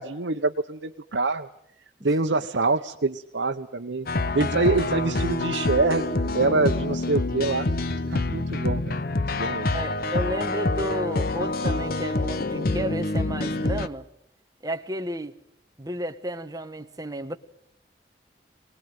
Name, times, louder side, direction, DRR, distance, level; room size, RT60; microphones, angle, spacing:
voice 1, 0.0-1.5 2.0-4.1 4.3-6.0 6.3-7.7 8.1-9.0 9.3-9.7, right 3 dB, 85° right, 1.0 m, -25 dB
sound 1, 4.1-13.9, left 2 dB, 55° left, 0.9 m, -26 dB
voice 2, 9.7-14.0 14.6-15.3 15.8-17.4, right 1 dB, 20° right, 1.3 m, -32 dB
23.5 x 20.0 x 9.3 m
head